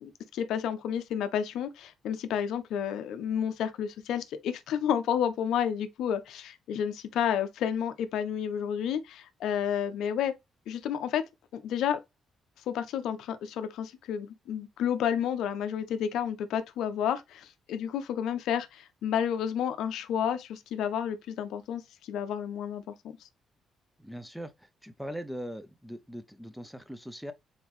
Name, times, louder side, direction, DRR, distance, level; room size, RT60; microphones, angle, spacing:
voice 1, 0.0-10.3 10.7-11.2 11.5-12.0 12.7-22.9, left 9 dB, 80° left, 0.5 m, -31 dB
voice 2, 24.0-27.3, equal, ahead, 0.5 m, -40 dB
3.9 x 3.5 x 3.0 m
cardioid pair, 90°, 0 cm